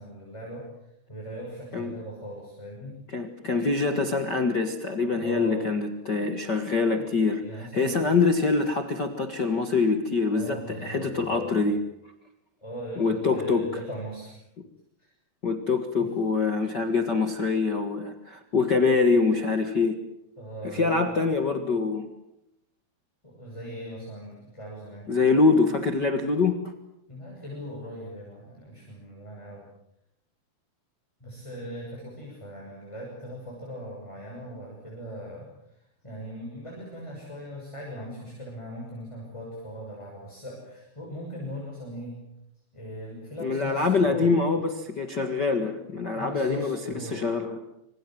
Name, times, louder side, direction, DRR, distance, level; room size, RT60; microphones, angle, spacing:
voice 1, 0.0-3.0 5.2-5.6 7.0-7.1 7.4-8.0 10.3-11.6 12.6-14.4 15.0-15.1 16.0-16.1 20.4-21.1 23.2-25.1 27.1-29.7 31.2-42.2 42.7-44.4 46.1-47.3, equal, 5° left, -2 dB, 6.4 m, -39 dB
voice 2, 3.1-11.8 13.0-13.7 15.4-20.0 20.6-22.1 25.1-26.6 43.4-47.6, left 4 dB, 60° left, 6 dB, 1.0 m, -25 dB
26.5 x 25.5 x 7.6 m, 0.79 s
omnidirectional pair, 4.8 m